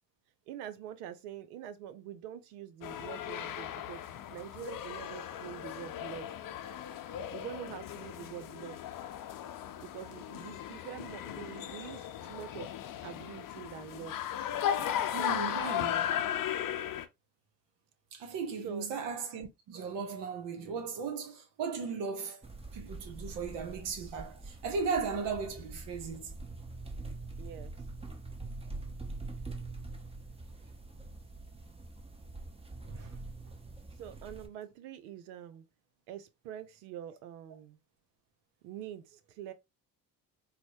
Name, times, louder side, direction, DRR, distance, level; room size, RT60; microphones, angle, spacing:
voice 1, 0.5-6.3 7.3-8.8 9.8-12.7 13.0-14.2 18.6-18.9 27.4-27.7 34.0-35.6 36.1-37.8 38.6-39.5, right 10 dB, 80° right, 0.7 m, -45 dB
sound 1, 2.8-17.0, left 10 dB, 50° left, 0.6 m, -36 dB
voice 2, 15.1-16.2 18.1-22.4 22.7-26.3 32.8-33.2, right 5 dB, 65° right, 1.0 m, -37 dB
sound 2, 22.4-34.5, right 2 dB, 15° right, 0.8 m, -44 dB
4.2 x 2.1 x 2.7 m
hypercardioid pair, 60°, 44 cm